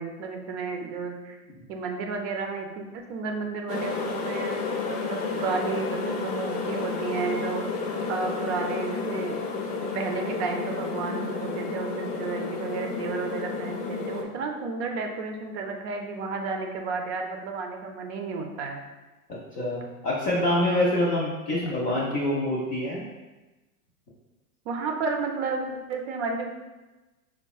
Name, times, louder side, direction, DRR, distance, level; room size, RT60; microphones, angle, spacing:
voice 1, 0.0-1.4 1.7-4.6 4.9-7.6 8.1-9.4 9.8-18.8 21.6-21.7 24.7-26.5, right 4 dB, 50° right, 3 dB, 0.5 m, -32 dB
sound 1, 3.7-14.2, left 4 dB, 90° left, 0.7 m, -31 dB
voice 2, 19.3-23.0, left 1 dB, 20° left, -6 dB, 0.3 m, -26 dB
4.5 x 2.1 x 2.3 m, 1.1 s
hypercardioid pair, 110°, 44 cm